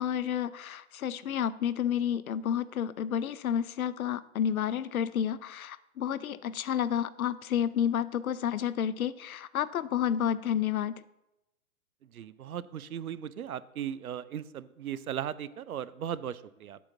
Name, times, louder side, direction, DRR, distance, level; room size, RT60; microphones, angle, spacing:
voice 1, 0.0-11.0, left 9 dB, 75° left, 17 dB, 0.6 m, -30 dB
voice 2, 12.1-16.8, right 9 dB, 80° right, 18 dB, 0.6 m, -37 dB
8.5 x 4.2 x 7.1 m, 0.93 s
figure-of-eight pair, 125°, 43 cm